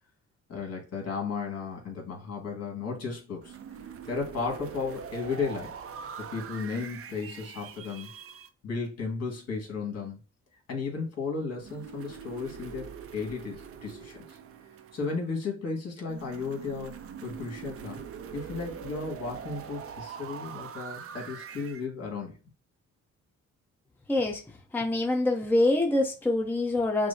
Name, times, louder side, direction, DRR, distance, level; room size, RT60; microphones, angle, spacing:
voice 1, 0.5-3.6 4.1-5.7 6.2-8.1 8.6-10.2 10.7-14.4 14.9-17.0 17.2-18.0 18.3-22.4, left 4 dB, 55° left, 1.8 m, -34 dB
sound 1, 3.4-8.5 11.6-15.4 16.1-21.8, right 7 dB, 50° right, 0.5 m, -43 dB
voice 2, 24.1-24.4 24.7-27.1, left 2 dB, 5° left, 0.6 m, -25 dB
6.0 x 2.0 x 2.7 m
cardioid pair, 90°, 30 cm